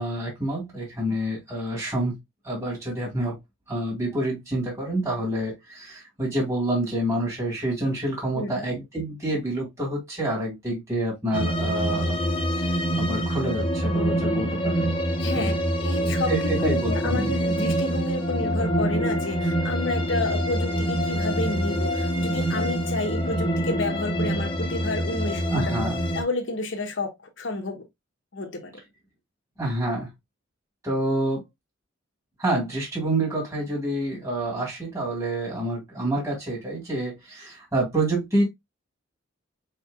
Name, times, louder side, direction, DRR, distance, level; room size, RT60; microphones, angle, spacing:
voice 1, 0.0-2.1 2.4-3.4 3.7-12.2 12.6-14.9 15.3-15.6 16.1-17.3 25.5-26.0 29.6-30.1 30.8-31.4 32.4-38.4, right 1 dB, 15° right, 2.2 m, -28 dB
voice 2, 8.3-8.7 15.2-16.3 16.6-25.9 26.1-27.8 28.3-28.8, left 2 dB, 70° left, 1.1 m, -30 dB
sound 1, 11.3-26.2, equal, 25° left, 1.0 m, -25 dB
4.6 x 4.5 x 2.3 m
head